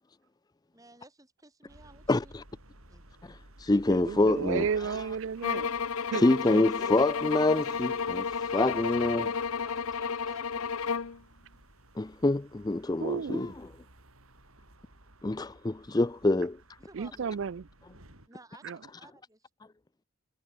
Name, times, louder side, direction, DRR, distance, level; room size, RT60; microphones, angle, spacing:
voice 1, 0.7-2.3 2.9-3.1 9.6-10.9 16.8-17.2 18.3-19.5, right 2 dB, 15° right, 4.6 m, -55 dB
sound 1, 1.7-18.3, right 2 dB, 75° right, 7.2 m, -55 dB
voice 2, 2.1-2.4 3.2-5.0 6.1-9.3 12.0-13.5 15.2-16.6, left 2 dB, 20° left, 0.4 m, -26 dB
voice 3, 3.9-5.7 6.1-6.7 13.0-13.5 16.9-17.7 18.6-18.8, right 6 dB, 60° right, 0.4 m, -33 dB
sound 2, 5.4-11.2, left 6 dB, 80° left, 0.8 m, -32 dB
head